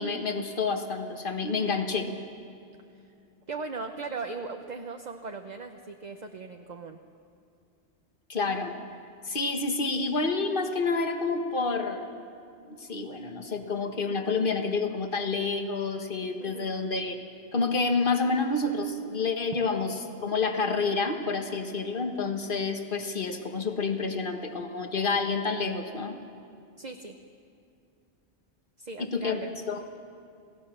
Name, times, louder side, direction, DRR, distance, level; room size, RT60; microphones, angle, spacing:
voice 1, 0.0-2.1 8.3-8.8 9.2-12.1 12.7-17.2 17.5-19.9 20.2-26.2 29.0-29.8, left 4 dB, 50° left, 5 dB, 1.7 m, -29 dB
voice 2, 3.5-7.0 16.4-16.7 26.8-27.2 28.8-29.5, right 4 dB, 40° right, 5 dB, 1.0 m, -38 dB
27.5 x 17.5 x 6.9 m, 2.6 s
omnidirectional pair, 1.1 m